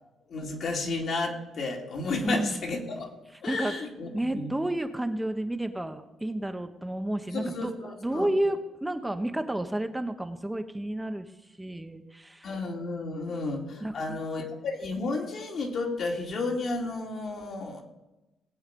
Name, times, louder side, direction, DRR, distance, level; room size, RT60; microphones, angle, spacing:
voice 1, 0.3-3.1 3.4-4.5 7.3-8.3 12.4-17.8, left 3 dB, 60° left, 1 dB, 2.8 m, -32 dB
voice 2, 2.2-2.6 3.5-3.8 4.1-7.7 8.0-11.3 11.6-12.5 13.3-13.4 13.8-14.2, right 1 dB, 10° right, 7 dB, 1.1 m, -31 dB
19.0 x 8.1 x 5.3 m, 1.0 s
cardioid pair, 90°, 0 cm